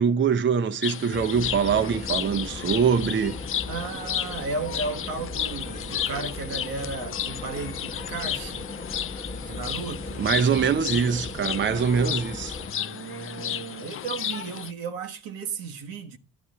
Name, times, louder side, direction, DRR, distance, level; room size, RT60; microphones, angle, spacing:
voice 1, 0.0-3.4 10.2-12.6, right 6 dB, 35° right, 0.7 m, -23 dB
sound 1, 0.8-14.7, left 10 dB, 35° left, 0.4 m, -33 dB
sound 2, 1.1-12.7, left 2 dB, 20° left, 1.1 m, -38 dB
voice 2, 3.7-8.7 9.4-10.3 12.6-16.2, right 4 dB, 70° right, 1.2 m, -34 dB
11.5 x 8.9 x 3.8 m
hypercardioid pair, 50°, 36 cm